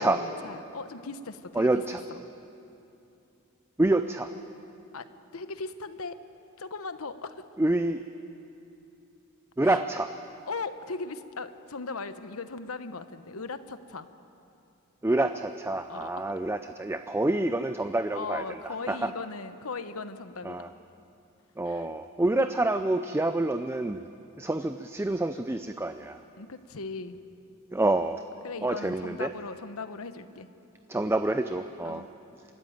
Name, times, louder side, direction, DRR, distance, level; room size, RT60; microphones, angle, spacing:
voice 1, 0.0-1.7 4.9-6.2 6.6-7.5 9.6-9.8 10.5-14.1 15.9-16.1 18.1-20.6 21.6-21.9 26.4-27.2 28.4-30.5 31.8-32.1, left 4 dB, 85° left, 11 dB, 1.0 m, -38 dB
voice 2, 1.5-2.0 3.8-4.3 7.6-8.0 9.6-10.1 15.0-19.1 20.4-20.7 21.6-24.1 24.4-26.2 27.7-28.2 28.6-29.3 30.9-32.0, right 2 dB, 10° right, 9 dB, 0.4 m, -27 dB
25.0 x 14.0 x 9.4 m, 2.8 s
head